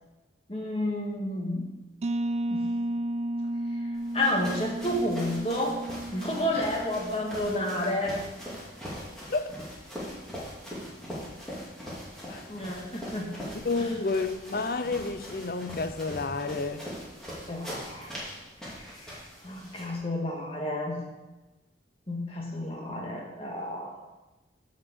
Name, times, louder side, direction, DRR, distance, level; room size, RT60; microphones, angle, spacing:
voice 1, 0.5-1.7 2.5-2.7 3.8-3.9 4.1-5.8 6.1-8.2 10.1-10.2 12.5-13.3 13.8-14.0 17.5-18.1 18.7-21.0 22.1-24.1, left 1 dB, 30° left, 1.7 m, -31 dB
sound 1, 2.0-7.6, right 1 dB, 35° right, 0.3 m, -33 dB
sound 2, 3.9-20.0, equal, 5° left, 2.5 m, -41 dB
voice 2, 13.6-16.9, left 3 dB, 55° left, 0.6 m, -30 dB
10.5 x 5.2 x 6.9 m
head